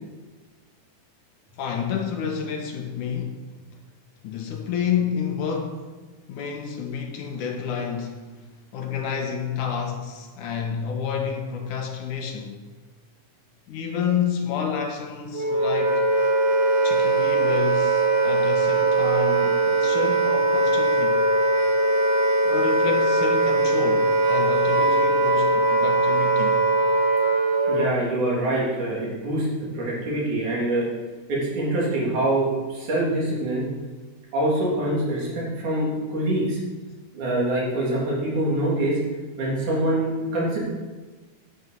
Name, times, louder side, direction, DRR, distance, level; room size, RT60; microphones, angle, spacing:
voice 1, 1.6-3.4 4.2-5.9 6.3-8.2 8.7-12.6 13.7-16.1 16.8-21.2 22.4-26.6, left 7 dB, 70° left, 3 dB, 2.6 m, -29 dB
Wind instrument woodwind instrument, 15.3-28.0, right 2 dB, 80° right, 1.0 m, -21 dB
voice 2, 27.7-29.5 29.7-30.9 31.3-33.7 34.3-36.6 37.1-39.0 39.4-40.6, right 1 dB, 65° right, -5 dB, 4.7 m, -24 dB
9.7 x 8.8 x 6.8 m, 1.3 s
omnidirectional pair, 3.8 m